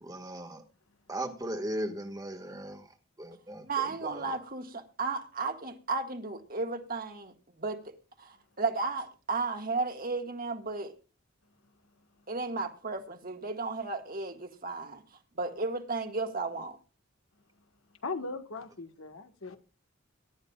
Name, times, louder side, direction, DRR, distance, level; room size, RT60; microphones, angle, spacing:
voice 1, 0.0-0.6 1.1-2.8 3.2-3.6, right 1 dB, 15° right, 1.7 m, -37 dB
voice 2, 3.6-7.9 8.2-10.9 12.3-15.0 15.3-16.8, right 3 dB, 45° right, 1.8 m, -34 dB
voice 3, 18.0-19.6, left 3 dB, 80° left, 1.6 m, -38 dB
22.0 x 12.0 x 2.4 m
head